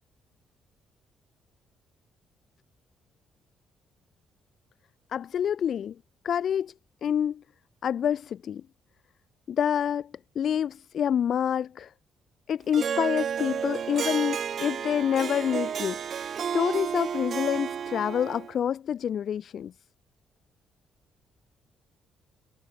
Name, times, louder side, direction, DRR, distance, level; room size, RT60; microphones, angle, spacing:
voice 1, 5.1-5.9 6.2-6.7 7.0-7.4 7.8-8.6 9.5-11.9 12.5-19.7, left 9 dB, 60° left, 3.1 m, -27 dB
Harp, 12.7-18.5, right 8 dB, 55° right, 0.6 m, -31 dB
cardioid pair, 90°, 0 cm